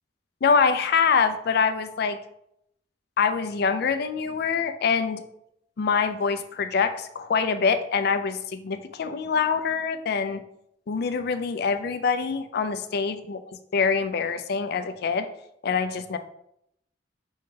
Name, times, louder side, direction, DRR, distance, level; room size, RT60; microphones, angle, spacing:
voice 1, 0.4-2.2 3.2-5.2 5.8-10.4 10.9-13.4 13.7-15.3 15.6-16.2, left 5 dB, 60° left, 10 dB, 0.4 m, -25 dB
5.3 x 3.6 x 2.7 m, 0.76 s
head